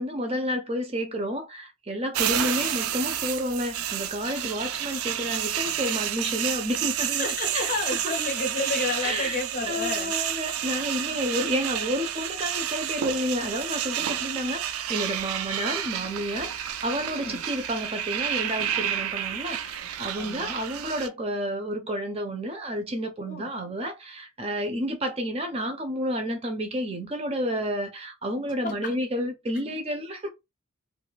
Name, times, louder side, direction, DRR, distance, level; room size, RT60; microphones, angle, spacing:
voice 1, 0.0-7.3 7.5-7.7 9.0-9.4 9.7-30.3, equal, 30° right, 0.5 m, -30 dB
sound 1, 2.1-21.1, right 10 dB, 90° right, 0.4 m, -30 dB
voice 2, 7.2-10.1 17.1-17.4 20.1-20.6 23.3-23.5 28.6-28.9, left 3 dB, 40° left, 0.6 m, -31 dB
2.5 x 2.3 x 3.2 m
head